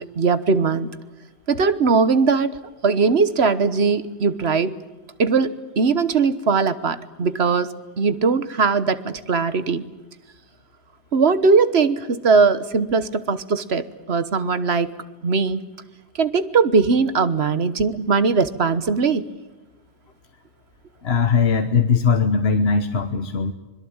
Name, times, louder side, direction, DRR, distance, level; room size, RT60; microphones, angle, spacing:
voice 1, 0.2-0.9 1.5-2.6 2.8-4.7 5.2-7.7 8.0-9.8 11.1-14.9 15.2-15.6 16.2-19.2, right 4 dB, 75° right, 13 dB, 1.5 m, -20 dB
voice 2, 21.0-23.5, left 5 dB, 70° left, 8 dB, 1.4 m, -19 dB
25.5 x 22.0 x 8.8 m, 1.1 s
omnidirectional pair, 1.1 m